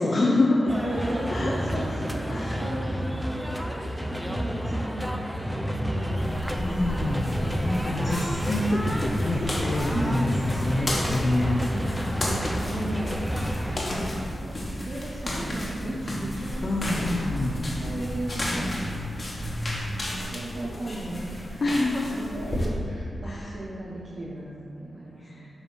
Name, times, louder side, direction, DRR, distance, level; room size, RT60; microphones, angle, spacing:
voice 1, 0.0-0.7 1.3-1.8 2.3-2.6 6.6-11.6 16.6-17.6 21.6-22.3 23.3-23.5 25.2-25.5, left 2 dB, 60° left, -2 dB, 0.6 m, -26 dB
sound 1, 0.7-13.8, equal, 5° right, 0.5 m, -30 dB
voice 2, 0.8-3.4 4.1-5.2 5.6-8.2 9.9-10.2 11.6-13.2 13.9-14.6 14.9-17.2 17.7-18.7 19.9-21.6 22.1-25.2, right 1 dB, 65° right, -7 dB, 0.9 m, -36 dB
sound 2, 6.2-22.7, left 1 dB, 40° left, 1.2 m, -33 dB
7.1 x 2.8 x 5.5 m, 2.5 s
cardioid pair, 50°, 0 cm